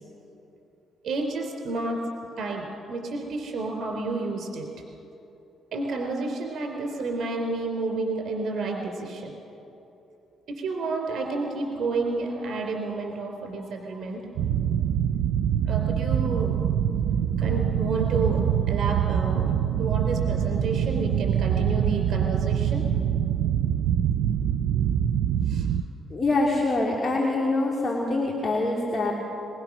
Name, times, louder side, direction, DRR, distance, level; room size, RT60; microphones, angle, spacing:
voice 1, 1.0-2.0 2.4-4.7 5.7-9.4 10.6-14.2 15.7-16.6 17.4-18.4 18.7-22.8 24.7-24.8 25.5-25.7, right 3 dB, 65° right, 2 dB, 3.7 m, -30 dB
sound 1, 14.4-25.8, right 9 dB, 85° right, 0.5 m, -24 dB
voice 2, 26.1-29.1, left 2 dB, 35° left, -2 dB, 2.8 m, -24 dB
22.5 x 22.0 x 6.2 m, 3.0 s
cardioid pair, 90°, 0 cm